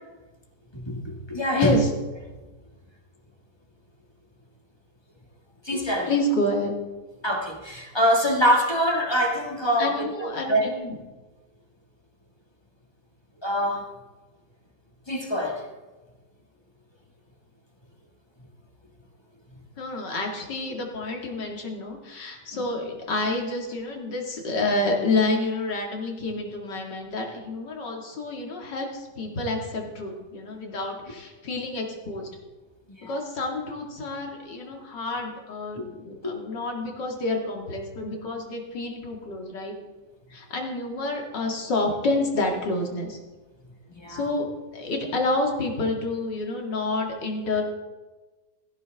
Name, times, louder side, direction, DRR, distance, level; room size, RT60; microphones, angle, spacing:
voice 1, 0.7-1.9 5.6-6.1 7.2-10.6 13.4-13.9 15.1-15.7 33.0-33.2 43.9-44.3, equal, 15° left, 1 dB, 1.6 m, -24 dB
voice 2, 1.5-1.9 6.1-6.7 9.8-10.9 19.8-32.3 33.0-39.7 40.3-43.2 44.1-44.5 44.7-47.6, left 2 dB, 85° left, 1 dB, 2.8 m, -28 dB
17.5 x 14.5 x 3.5 m, 1.2 s
omnidirectional pair, 1.8 m